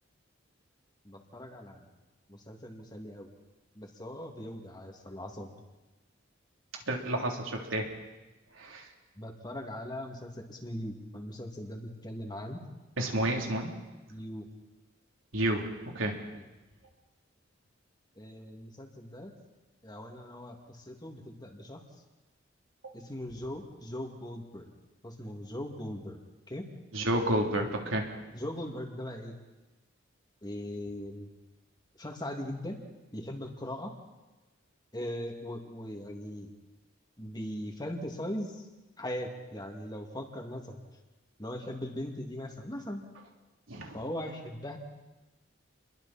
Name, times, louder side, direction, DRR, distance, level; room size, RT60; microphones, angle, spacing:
voice 1, 1.0-1.9 2.3-3.3 3.7-5.5 9.2-12.6 14.1-14.5 18.2-19.3 19.8-21.8 22.9-24.7 25.0-26.2 26.5-26.7 28.3-29.3 30.4-31.3 32.0-32.8 33.1-33.9 34.9-36.5 37.2-38.6 39.0-40.8 41.4-43.0 43.9-44.8, left 1 dB, 20° left, 2 dB, 2.6 m, -39 dB
voice 2, 6.9-7.9 8.6-8.9 13.0-13.7 15.3-15.7 15.9-16.2 26.9-28.1 43.7-44.0, right 1 dB, 90° right, 1 dB, 3.5 m, -30 dB
29.5 x 22.5 x 4.4 m, 1.1 s
head